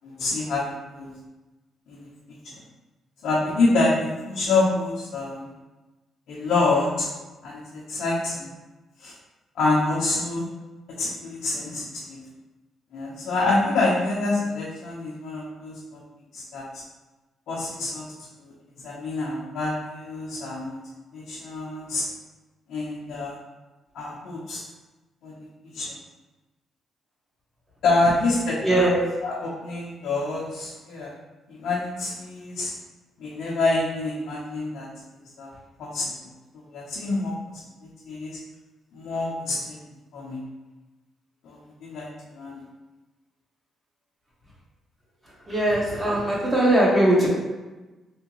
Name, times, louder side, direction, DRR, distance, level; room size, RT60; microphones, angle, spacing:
voice 1, 0.0-1.1 1.9-2.1 3.2-5.4 6.3-7.1 7.4-8.5 9.0-9.1 9.6-10.5 11.0-12.2 12.9-16.0 16.3-16.8 17.5-18.0 18.8-20.8 21.1-22.0 22.7-23.4 23.9-24.6 25.2-25.3 25.7-26.0 27.8-28.9 29.2-31.1 31.5-32.7 33.2-34.9 35.4-35.5 35.8-36.1 36.7-37.3 37.8-38.4 38.9-39.8 40.1-40.4 41.4-42.6, left 2 dB, 75° left, -6 dB, 0.7 m, -26 dB
voice 2, 28.6-29.0 45.2-47.3, right 1 dB, 25° right, -6 dB, 1.4 m, -20 dB
3.6 x 3.1 x 3.0 m, 1.1 s
cardioid pair, 90°, 0 cm